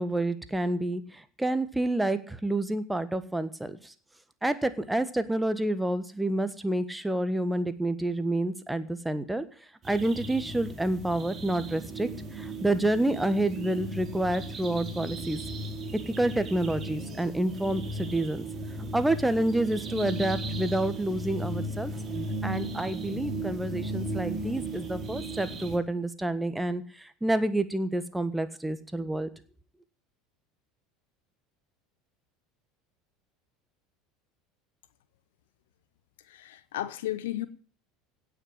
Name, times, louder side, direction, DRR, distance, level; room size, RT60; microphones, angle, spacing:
voice 1, 0.0-3.9 4.4-9.4 9.9-15.4 15.9-18.4 18.9-21.9 22.4-29.3, right 1 dB, 5° right, 1.4 m, -28 dB
sound 1, 9.8-25.8, right 1 dB, 25° right, 3.6 m, -36 dB
voice 2, 36.2-37.5, left 14 dB, 65° left, 0.9 m, -34 dB
17.0 x 6.2 x 8.7 m
figure-of-eight pair, 70°, 0 cm